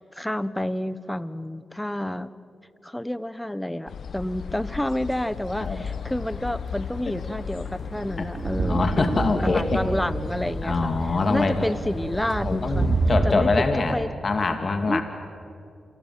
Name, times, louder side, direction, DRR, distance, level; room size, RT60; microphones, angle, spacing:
voice 1, 0.0-2.3 2.8-12.9 13.2-13.6 13.9-14.1 14.9-15.0, left 1 dB, 10° left, 16 dB, 1.3 m, -29 dB
sound 1, 3.9-13.1, left 7 dB, 70° left, 1.1 m, -36 dB
sound 2, 5.5-6.0 6.9-13.3, right 3 dB, 55° right, 3.4 m, -29 dB
voice 2, 8.7-9.8 10.6-11.7 12.4-14.0 14.2-15.0, left 3 dB, 55° left, 7 dB, 2.4 m, -24 dB
28.5 x 24.0 x 7.7 m, 2.5 s
supercardioid pair, 40°, 0 cm